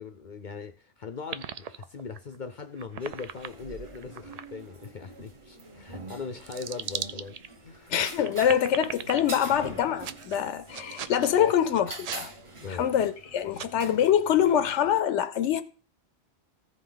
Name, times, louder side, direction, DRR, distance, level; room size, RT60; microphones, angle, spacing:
voice 1, 0.0-7.9 11.4-11.5 12.6-12.9, left 5 dB, 50° left, 0.6 m, -39 dB
sound 1, 1.3-2.4 2.8-4.5 4.8-4.9 5.6-5.7 6.3-7.5 8.1-9.2 10.0-10.4 10.7-11.3 11.7-12.2 12.7-12.8 13.2-13.3 13.5-13.7, right 7 dB, 60° right, 0.4 m, -38 dB
sound 2, 3.0-15.0, right 2 dB, 30° right, 0.9 m, -45 dB
voice 2, 7.9-12.3 12.7-15.6, left 9 dB, 85° left, 0.9 m, -25 dB
15.0 x 5.0 x 3.9 m
omnidirectional pair, 1.2 m